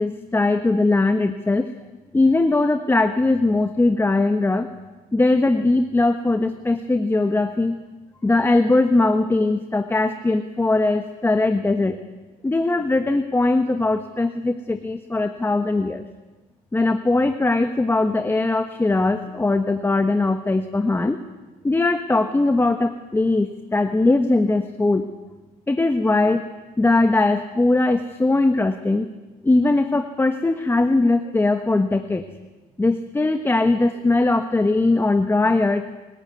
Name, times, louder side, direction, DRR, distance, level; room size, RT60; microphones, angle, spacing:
voice 1, 0.0-1.7 2.1-4.7 5.1-7.8 8.2-12.0 12.4-16.1 16.7-21.2 21.6-25.1 25.7-26.5 26.8-29.1 29.4-32.3 32.8-35.9, left 2 dB, 15° left, 7 dB, 1.2 m, -20 dB
25.5 x 15.0 x 9.6 m, 1.2 s
cardioid pair, 110°, 17 cm